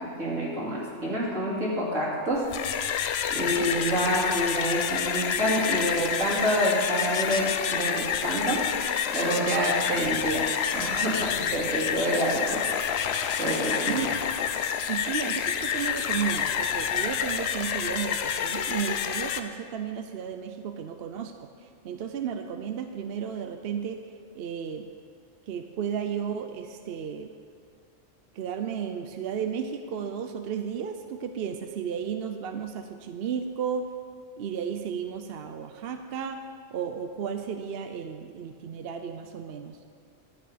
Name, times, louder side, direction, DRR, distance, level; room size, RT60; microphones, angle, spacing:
voice 1, 0.2-2.4 3.3-8.6 9.1-12.6 13.4-14.0, equal, 75° right, -6 dB, 3.1 m, -27 dB
sound 1, 2.4-19.4, left 8 dB, 65° left, 0.8 m, -28 dB
voice 2, 3.4-3.8 12.1-12.6 13.8-14.3 14.9-24.0 24.3-24.9 25.5-27.3 28.3-33.9 34.4-36.4 36.7-39.8, right 7 dB, 60° right, 7 dB, 0.8 m, -33 dB
11.5 x 8.9 x 5.0 m, 2.2 s
omnidirectional pair, 1.3 m